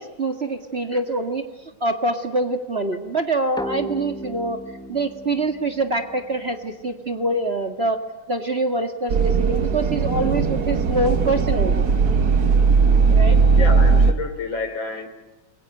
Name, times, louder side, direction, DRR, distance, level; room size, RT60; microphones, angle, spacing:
voice 1, 0.0-4.6 4.9-8.0 8.3-11.8 13.1-13.4, right 2 dB, 30° right, 7 dB, 2.0 m, -25 dB
sound 1, 3.6-7.0, equal, 5° left, 1.1 m, -36 dB
sound 2, 9.1-14.1, right 5 dB, 50° right, 1.9 m, -18 dB
voice 2, 13.6-15.1, left 3 dB, 65° left, 9 dB, 4.3 m, -29 dB
28.5 x 23.0 x 9.1 m, 1.1 s
omnidirectional pair, 2.3 m